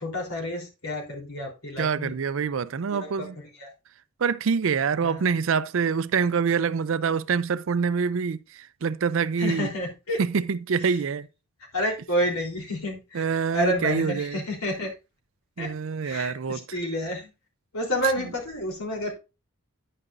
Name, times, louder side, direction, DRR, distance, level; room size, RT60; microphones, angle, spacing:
voice 1, 0.0-2.1 2.9-3.3 3.6-3.7 5.0-5.2 9.4-10.2 10.9-11.0 11.7-14.9 15.6-15.7 16.0-17.3 17.7-19.1, equal, 90° left, 3.5 m, -29 dB
voice 2, 1.8-3.4 4.2-9.7 10.2-11.3 13.1-14.4 15.6-16.6, right 6 dB, 65° right, 0.4 m, -25 dB
10.0 x 9.9 x 2.5 m
head